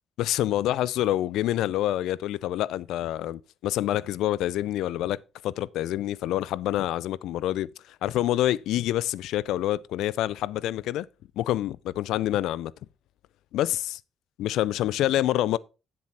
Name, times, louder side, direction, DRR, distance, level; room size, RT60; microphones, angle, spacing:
voice 1, 0.2-5.2 5.4-7.7 8.0-11.1 11.4-12.7 13.5-14.0 14.4-15.6, left 13 dB, 85° left, 0.4 m, -27 dB
9.6 x 7.6 x 4.2 m
cardioid pair, 90°, 0 cm